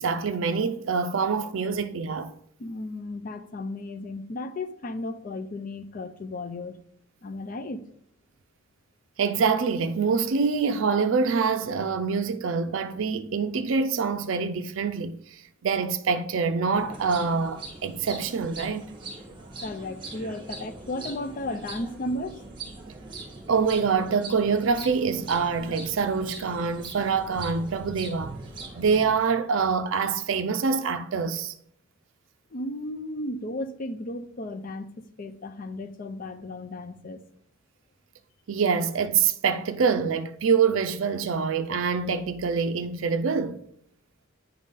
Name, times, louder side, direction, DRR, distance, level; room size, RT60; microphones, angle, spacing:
voice 1, 0.0-2.3 9.2-15.2 15.6-18.9 23.5-28.4 28.8-31.5 38.5-43.6, right 5 dB, 70° right, 0.4 m, -25 dB
voice 2, 2.6-6.8 7.2-7.9 19.6-22.4 32.5-37.2, left 2 dB, 40° left, 0.5 m, -34 dB
sound 1, 16.7-29.1, right 3 dB, 25° right, 1.4 m, -42 dB
9.3 x 3.7 x 4.0 m
head